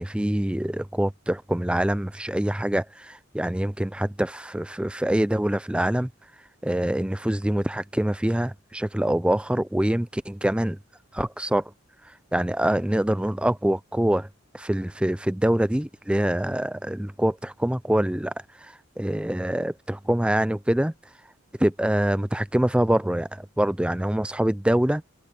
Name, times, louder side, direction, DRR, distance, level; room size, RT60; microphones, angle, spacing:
voice 1, 0.0-6.1 6.6-10.8 11.1-11.6 12.3-14.3 14.5-18.3 18.6-20.9 21.6-25.0, right 1 dB, 5° right, 0.4 m, -25 dB
head